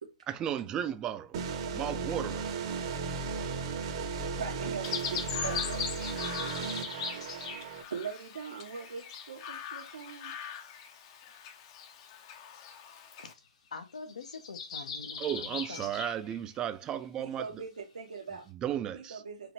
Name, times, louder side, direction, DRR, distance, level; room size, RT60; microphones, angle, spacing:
voice 1, 0.3-1.4 1.7-2.5 15.2-17.5 18.6-19.2, right 10 dB, 20° right, 0.4 m, -34 dB
sound 1, 1.3-7.8, right 4 dB, 45° right, 0.8 m, -35 dB
sound 2, 1.8-1.9 2.6-4.9 5.4-8.1 8.3-9.9 10.4-10.5 10.7-10.9 12.0-12.1 12.3-12.4 12.7-12.9 13.3-13.4 13.7-16.6 16.9-17.0 17.4-17.5 18.2-18.3, left 5 dB, 60° left, 1.2 m, -43 dB
voice 2, 4.4-5.9 7.1-10.3 17.2-18.5 18.9-19.5, right 6 dB, 80° right, 0.9 m, -42 dB
Chirp tweet, 4.8-13.3, left 8 dB, 40° left, 0.7 m, -41 dB
voice 3, 13.7-16.0, left 4 dB, 80° left, 1.0 m, -45 dB
4.7 x 2.5 x 3.3 m
hypercardioid pair, 140°, 4 cm